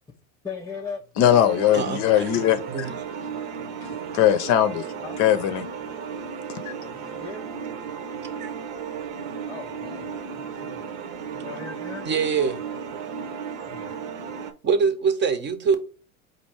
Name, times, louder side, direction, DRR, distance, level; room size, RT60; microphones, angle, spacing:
voice 1, 0.4-1.0 5.0-5.2 6.8-7.5 9.5-10.9 11.3-12.1 13.7-14.0, left 5 dB, 10° left, 0.4 m, -38 dB
voice 2, 1.2-2.9 4.1-4.9 5.2-5.6, left 11 dB, 45° left, 0.7 m, -20 dB
sound 1, 1.2-14.5, right 6 dB, 55° right, 0.9 m, -35 dB
voice 3, 1.7-2.2 2.7-2.9 8.4-8.5 12.0-12.6 14.6-15.8, right 5 dB, 25° right, 0.8 m, -23 dB
4.4 x 2.6 x 4.3 m
hypercardioid pair, 95°, 40 cm